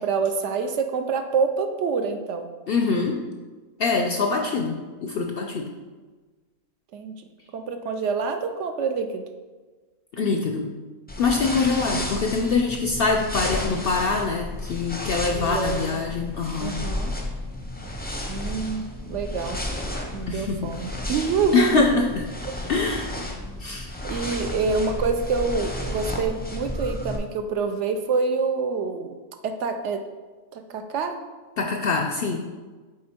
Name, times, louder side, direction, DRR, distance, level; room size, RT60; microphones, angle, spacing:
voice 1, 0.0-2.5 4.2-4.4 6.9-7.2 7.5-9.2 11.3-11.9 15.3-16.0 16.6-17.1 18.3-19.6 20.1-21.9 22.4-22.5 24.0-29.1 29.4-30.0 30.5-31.2, right 5 dB, 65° right, 6 dB, 0.8 m, -27 dB
voice 2, 2.7-3.2 3.8-5.7 10.2-10.7 11.2-16.8 20.3-20.7 21.5-22.1 22.7-23.1 23.6-23.9 31.6-32.4, left 4 dB, 65° left, 3 dB, 0.6 m, -24 dB
sound 1, 11.1-27.2, left 1 dB, 10° left, 0.4 m, -32 dB
7.7 x 3.8 x 4.3 m, 1.3 s
omnidirectional pair, 1.4 m